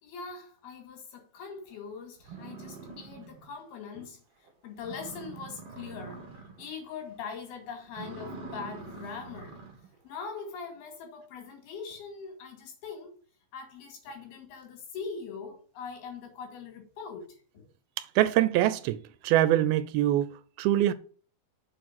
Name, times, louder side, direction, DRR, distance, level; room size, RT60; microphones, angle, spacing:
voice 1, 0.0-4.2 4.6-6.2 6.6-9.6 10.0-13.2 13.5-17.6, left 5 dB, 85° left, 4.2 m, -42 dB
sound 1, 1.7-1.8 2.2-3.6 4.0-4.1 4.5-4.6 4.8-6.7 7.0-7.4 7.8-9.9, right 4 dB, 45° right, 2.5 m, -44 dB
voice 2, 18.2-19.0 19.2-20.3 20.6-20.9, right 13 dB, 85° right, 2.5 m, -23 dB
7.2 x 4.5 x 5.9 m
omnidirectional pair, 4.3 m